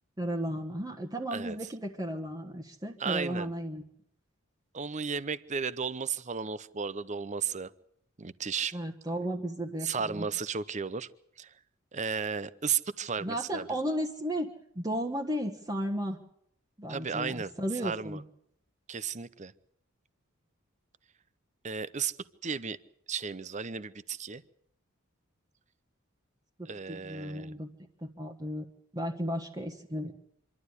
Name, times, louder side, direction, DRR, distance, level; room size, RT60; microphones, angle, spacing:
voice 1, 0.2-3.8 8.7-10.3 13.2-16.2 16.8-18.2 26.6-27.7 28.0-28.6 28.9-30.1, equal, 20° right, 0 dB, 1.4 m, -34 dB
voice 2, 3.0-3.5 4.7-7.7 8.2-8.8 9.8-11.1 11.4-11.5 11.9-13.7 16.9-17.5 17.8-18.2 18.9-19.5 21.6-22.1 22.4-22.8 23.1-24.4 26.6-27.6, right 6 dB, 35° right, 17 dB, 0.8 m, -34 dB
26.0 x 12.0 x 9.8 m, 0.73 s
head